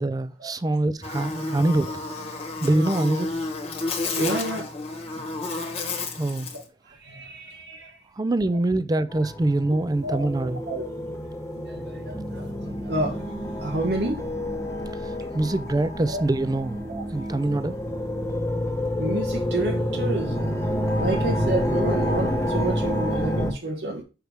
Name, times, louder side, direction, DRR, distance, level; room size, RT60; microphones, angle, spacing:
voice 1, 0.0-2.2 2.6-3.3 6.1-6.5 8.2-10.6 15.0-16.8 17.1-17.8, right 2 dB, 20° right, 0.4 m, -24 dB
Buzz, 1.0-6.6, left 3 dB, 35° left, 1.2 m, -31 dB
voice 2, 4.1-4.8 6.5-8.0 10.0-10.3 10.7-10.9 11.5-13.2 13.6-14.2 15.3-15.4 16.1-16.2 16.9-17.0 19.0-24.0, right 1 dB, 65° right, 1.0 m, -30 dB
sound 1, 9.1-23.5, equal, 15° left, 0.9 m, -28 dB
6.5 x 4.7 x 3.4 m
head